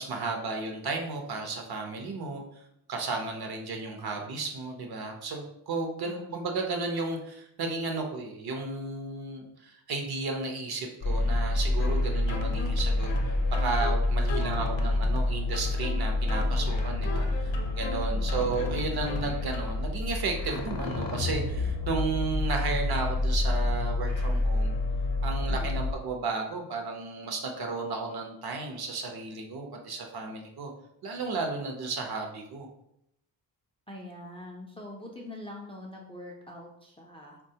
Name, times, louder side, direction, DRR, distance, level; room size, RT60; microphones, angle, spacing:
voice 1, 0.0-2.6 2.9-24.8 25.2-30.7 31.0-32.7, right 3 dB, 60° right, 3 dB, 0.6 m, -33 dB
voice 2, 6.0-6.5 14.4-15.0 18.1-19.1 25.5-25.8 33.9-37.4, left 1 dB, 15° left, -1 dB, 0.3 m, -44 dB
sound 1, 11.0-25.9, left 2 dB, 50° left, 0.7 m, -28 dB
sound 2, 11.8-19.8, left 5 dB, 90° left, 0.6 m, -39 dB
3.5 x 2.2 x 2.7 m, 0.77 s
wide cardioid pair, 110°, 43 cm